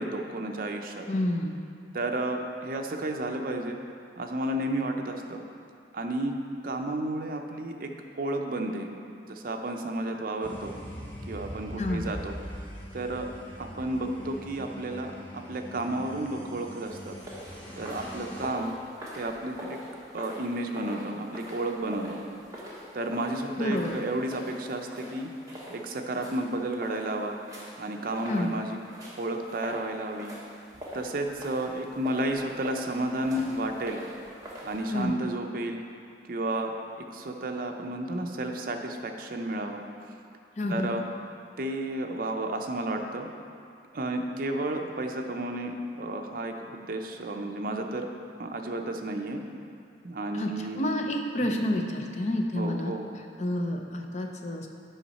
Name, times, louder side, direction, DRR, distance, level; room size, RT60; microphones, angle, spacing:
voice 1, 0.0-1.1 1.9-3.8 4.2-5.4 5.9-6.4 6.6-8.9 9.3-10.8 11.3-12.4 12.9-13.3 13.6-17.2 17.8-18.7 19.2-19.8 20.1-22.2 22.9-25.3 25.7-27.4 27.8-28.8 29.2-30.3 30.9-34.0 34.6-35.8 36.3-36.7 37.0-39.8 40.7-41.0 41.6-43.3 43.9-48.1 48.4-49.4 50.0-50.9 51.4-51.6 52.6-53.1, right 1 dB, 55° right, 3 dB, 0.6 m, -32 dB
voice 2, 1.1-1.6 11.8-12.1 23.6-24.0 28.3-28.5 34.9-35.1 40.6-40.9 50.3-50.5 50.8-52.9 53.4-54.7, left 1 dB, 40° left, 3 dB, 0.6 m, -29 dB
sound 1, 10.4-18.5, equal, 10° left, 1.3 m, -42 dB
sound 2, 16.9-35.0, equal, 20° right, 1.3 m, -44 dB
8.9 x 5.5 x 4.1 m, 2.4 s
head